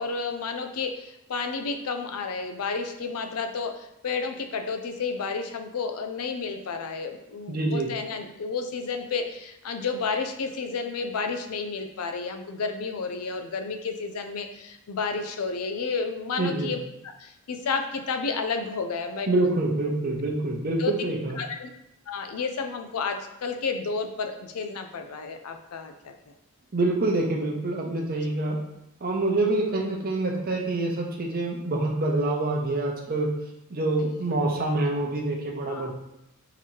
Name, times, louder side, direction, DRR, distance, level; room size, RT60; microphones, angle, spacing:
voice 1, 0.0-19.5 20.8-20.9 21.3-21.7 22.1-26.1 28.2-28.3 34.0-34.2 35.7-35.9, left 4 dB, 90° left, 6 dB, 0.5 m, -31 dB
voice 2, 7.5-7.9 16.4-16.7 19.1-21.4 26.7-28.6 29.0-33.3 33.7-35.9, right 2 dB, 45° right, 0 dB, 0.7 m, -26 dB
3.9 x 2.9 x 4.5 m, 0.84 s
head